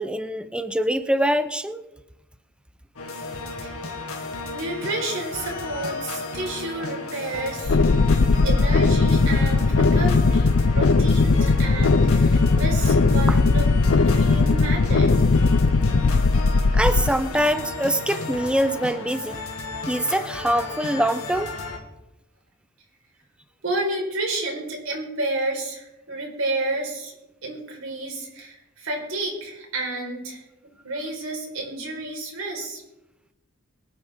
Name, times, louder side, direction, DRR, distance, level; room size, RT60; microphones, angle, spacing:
voice 1, 0.0-1.8 13.3-13.4 16.7-19.4 19.9-21.5, equal, 5° right, 11 dB, 0.7 m, -24 dB
sound 1, 3.0-21.8, left 3 dB, 85° left, 2.3 m, -34 dB
voice 2, 4.5-8.2 8.4-13.7 14.1-15.2 23.6-27.1 27.4-30.4 30.8-32.8, right 2 dB, 70° right, 0 dB, 4.5 m, -30 dB
sound 2, 7.6-17.1, left 3 dB, 55° left, 0.5 m, -18 dB
24.0 x 8.8 x 3.6 m, 0.94 s
head